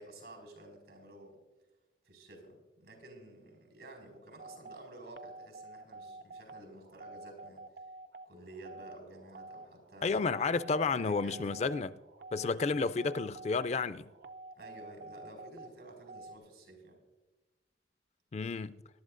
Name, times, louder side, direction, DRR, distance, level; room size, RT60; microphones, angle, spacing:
voice 1, 0.0-1.4 2.0-7.6 8.2-10.2 11.0-11.4 12.7-12.9 14.5-17.0, right 1 dB, 85° right, 4.7 m, -52 dB
sound 1, 4.4-16.4, right 3 dB, 70° right, 0.6 m, -49 dB
voice 2, 10.0-12.0 12.3-14.1 18.3-18.8, left 4 dB, 40° left, 0.3 m, -31 dB
22.0 x 11.5 x 2.5 m
head